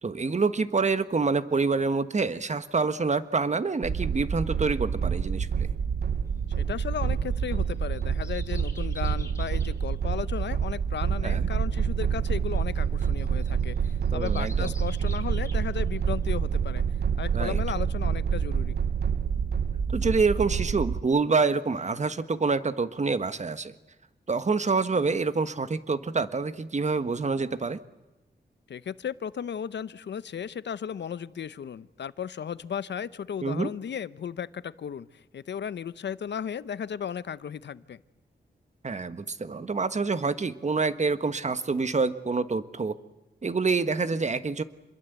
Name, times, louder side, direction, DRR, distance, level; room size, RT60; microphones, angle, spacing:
voice 1, 0.0-5.7 11.2-11.5 14.1-14.7 17.3-17.6 19.9-23.8 24.3-27.8 33.4-33.7 38.8-42.9 43.4-44.6, right 4 dB, 40° right, 12 dB, 1.5 m, -27 dB
sound 1, 3.8-21.0, right 7 dB, 65° right, 0.8 m, -27 dB
sound 2, 6.3-16.3 16.7-16.8, left 2 dB, 15° left, 3.6 m, -50 dB
voice 2, 6.6-13.8 14.1-16.8 17.2-18.8 28.7-35.1 35.3-38.0, left 8 dB, 85° left, 16 dB, 0.8 m, -35 dB
28.0 x 22.0 x 8.2 m, 1.0 s
wide cardioid pair, 85°, 18 cm